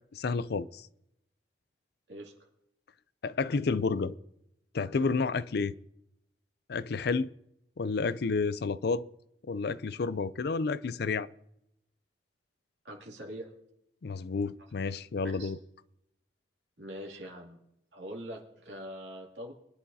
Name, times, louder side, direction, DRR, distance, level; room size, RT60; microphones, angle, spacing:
voice 1, 0.1-0.9 3.2-4.1 4.7-5.7 6.7-7.3 7.8-9.0 9.4-11.3 14.0-15.6, left 4 dB, 60° left, 0.5 m, -30 dB
voice 2, 12.8-13.5 15.4-15.5 16.8-17.6 17.9-19.5, equal, 80° right, 2.6 m, -43 dB
23.5 x 10.0 x 2.8 m
head